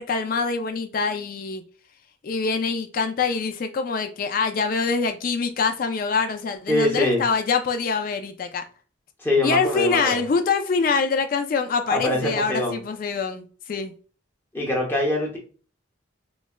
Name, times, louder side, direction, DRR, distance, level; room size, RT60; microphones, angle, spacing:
voice 1, 0.0-1.6 2.2-8.6 9.4-13.9, left 5 dB, 45° left, 0.3 m, -24 dB
voice 2, 6.7-7.2 9.2-10.2 11.9-12.8 14.5-15.4, left 1 dB, 10° left, 0.8 m, -23 dB
4.0 x 2.1 x 2.2 m
head